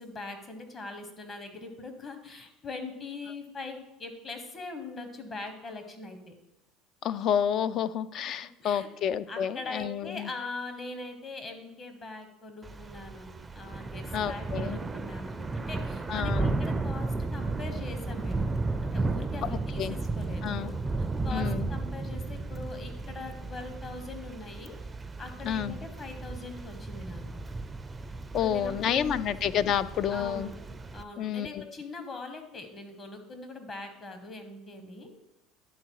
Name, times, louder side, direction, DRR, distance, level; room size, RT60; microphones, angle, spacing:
voice 1, 0.0-6.3 8.3-8.9 9.3-13.3 13.5-18.5 18.8-20.7 21.2-24.8 25.2-27.2 28.4-28.7 29.1-29.3 30.1-30.6 30.9-35.1, left 3 dB, 35° left, 6 dB, 1.4 m, -42 dB
voice 2, 7.0-10.3 14.1-14.8 16.1-16.6 19.4-20.0 20.4-20.7 21.3-21.7 25.4-25.8 28.3-30.5 31.2-31.7, left 9 dB, 50° left, 15 dB, 0.4 m, -30 dB
Thunder / Rain, 12.6-31.0, right 3 dB, 15° right, 0.4 m, -34 dB
11.0 x 3.9 x 4.7 m, 0.91 s
supercardioid pair, 95°, 0 cm